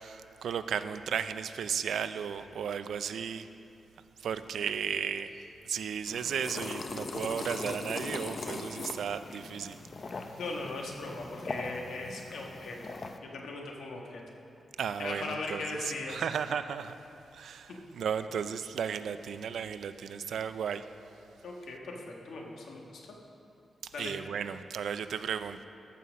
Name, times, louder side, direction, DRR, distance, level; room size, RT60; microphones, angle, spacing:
voice 1, 0.0-3.5 4.2-5.3 5.6-9.8 14.8-17.0 17.3-20.9 24.0-25.6, right 7 dB, 85° right, 11 dB, 0.4 m, -34 dB
sound 1, 6.1-13.2, left 3 dB, 45° left, 0.6 m, -40 dB
voice 2, 10.4-14.2 15.0-16.3 17.7-17.8 21.4-23.1 23.9-24.1, left 2 dB, 85° left, 0 dB, 1.5 m, -39 dB
14.0 x 5.7 x 6.2 m, 2.8 s
wide cardioid pair, 115°, 0 cm